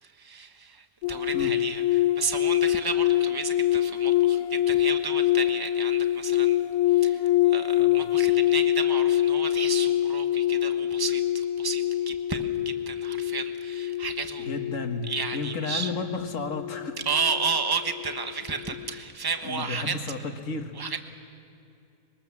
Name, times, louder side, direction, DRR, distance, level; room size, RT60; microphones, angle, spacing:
voice 1, 0.0-6.6 6.9-14.5 15.0-15.9 17.0-20.0 20.7-21.0, right 5 dB, 15° right, 7 dB, 1.1 m, -32 dB
sound 1, 1.0-18.4 18.6-19.0, left 13 dB, 70° left, 1.1 m, -25 dB
voice 2, 14.5-15.1 15.3-17.0 19.4-20.7, left 3 dB, 50° left, 6 dB, 1.8 m, -32 dB
25.0 x 22.0 x 7.2 m, 2.7 s
omnidirectional pair, 1.7 m